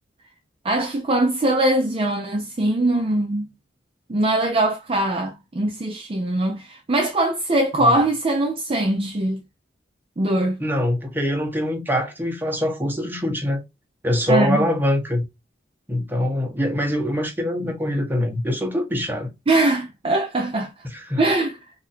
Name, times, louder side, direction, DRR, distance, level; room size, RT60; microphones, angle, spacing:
voice 1, 0.6-3.5 4.1-9.4 10.2-10.6 14.3-14.7 19.5-20.7 21.2-21.6, right 1 dB, 30° right, 0.5 m, -21 dB
voice 2, 10.6-13.6 14.0-15.2 15.9-19.3 20.9-21.2, equal, 10° right, 0.9 m, -23 dB
2.6 x 2.6 x 4.0 m
head